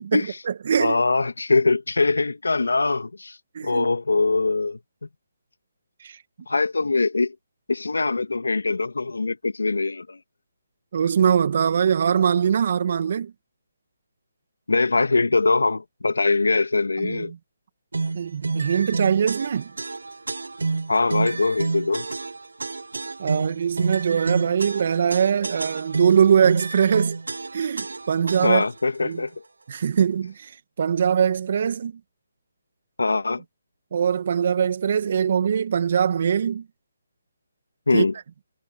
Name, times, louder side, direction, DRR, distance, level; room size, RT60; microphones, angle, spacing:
voice 1, 0.1-1.0 3.5-3.9 6.0-6.2 10.9-13.3 17.0-17.4 18.1-19.7 23.2-27.2 27.5-28.6 29.0-29.2 29.7-32.0 33.9-36.7 37.9-38.1, right 7 dB, 50° right, 2.0 m, -22 dB
voice 2, 0.8-4.8 6.5-7.3 7.7-10.2 14.7-17.3 20.9-22.1 28.4-29.3 33.0-33.4 37.9-38.1, left 3 dB, 85° left, 2.8 m, -22 dB
sound 1, 17.9-28.8, right 3 dB, 85° right, 0.8 m, -29 dB
hypercardioid pair, 155°, 0 cm